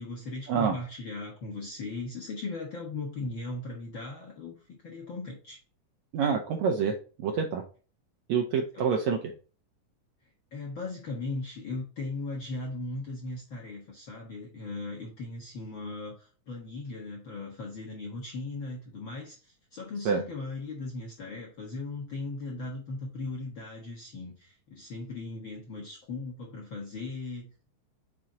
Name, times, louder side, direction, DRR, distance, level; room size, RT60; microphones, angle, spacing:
voice 1, 0.0-5.6 8.7-8.9 10.5-19.4 19.7-27.7, left 3 dB, 50° left, -2 dB, 1.5 m, -38 dB
voice 2, 6.1-6.9 7.2-7.6 8.3-9.3 20.0-20.2, right 6 dB, 75° right, 3 dB, 1.7 m, -27 dB
6.0 x 4.3 x 3.8 m, 0.36 s
omnidirectional pair, 3.9 m